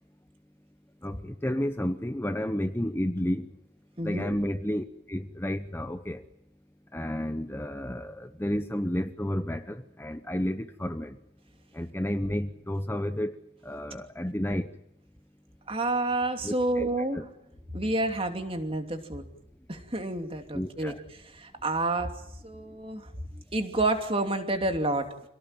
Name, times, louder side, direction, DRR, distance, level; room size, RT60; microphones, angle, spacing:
voice 1, 1.0-3.5 4.0-6.2 6.9-11.2 11.7-13.3 13.6-14.7 16.4-16.9 17.1-17.2 20.5-21.0, left 1 dB, 10° left, 0.9 m, -31 dB
voice 2, 4.0-4.3 15.7-17.2 17.7-19.3 19.7-20.9 21.4-22.1 22.4-23.1 23.5-25.1, right 2 dB, 25° right, 2.8 m, -29 dB
27.5 x 17.5 x 9.1 m
head